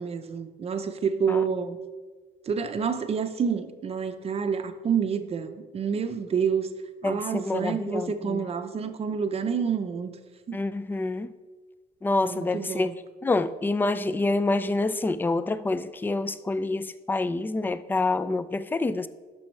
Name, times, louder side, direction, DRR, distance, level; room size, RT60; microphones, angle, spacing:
voice 1, 0.0-1.8 2.5-6.7 7.0-10.1 10.5-10.6 12.3-12.9, right 6 dB, 35° right, 8 dB, 0.6 m, -28 dB
voice 2, 7.0-8.4 10.5-11.3 12.0-12.9 13.2-19.1, left 2 dB, 10° left, 14 dB, 0.3 m, -27 dB
11.5 x 6.2 x 3.2 m, 1.4 s
cardioid pair, 110°, 17 cm